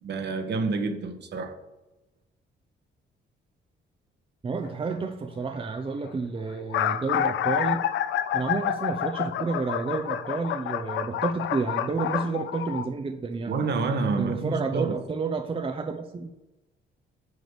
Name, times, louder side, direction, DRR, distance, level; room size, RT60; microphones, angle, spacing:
voice 1, 0.0-1.6 13.5-15.0, right 4 dB, 60° right, 1.2 m, -28 dB
voice 2, 4.4-7.8 8.3-13.5 14.2-16.3, right 4 dB, 25° right, 0.7 m, -30 dB
sound 1, 4.6-4.9 5.8-5.9 6.1-6.2 6.5-12.9, left 10 dB, 75° left, 0.5 m, -28 dB
9.4 x 3.2 x 6.8 m
cardioid pair, 90°, 20 cm